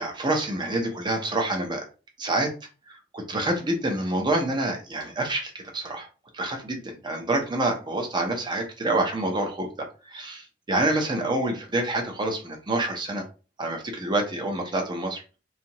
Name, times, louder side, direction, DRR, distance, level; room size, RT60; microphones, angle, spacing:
voice 1, 0.0-1.9 2.2-2.5 2.9-6.1 6.3-13.2 13.6-15.2, right 2 dB, 25° right, 2 dB, 0.6 m, -27 dB
2.7 x 2.4 x 2.9 m, 0.34 s
head